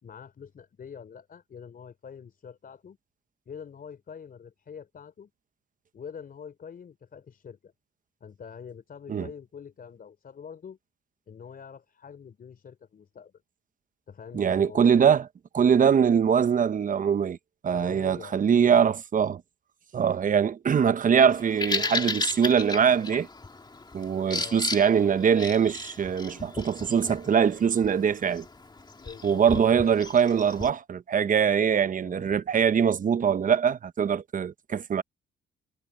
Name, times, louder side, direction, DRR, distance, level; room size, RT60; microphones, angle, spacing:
voice 1, 0.0-3.0 3.5-5.3 5.9-7.7 8.2-10.8 11.3-13.3 14.1-15.1 17.7-18.8 24.3-24.6 29.0-29.4 31.6-32.4, left 7 dB, 50° left, 4.2 m, -45 dB
voice 2, 14.3-15.2 15.5-17.4 17.6-19.4 19.9-23.3 23.9-28.4 29.2-35.0, right 7 dB, 40° right, 0.9 m, -23 dB
Bird vocalization bird call bird song, 21.3-30.7, left 3 dB, 20° left, 2.1 m, -35 dB
cardioid pair, 90°, 20 cm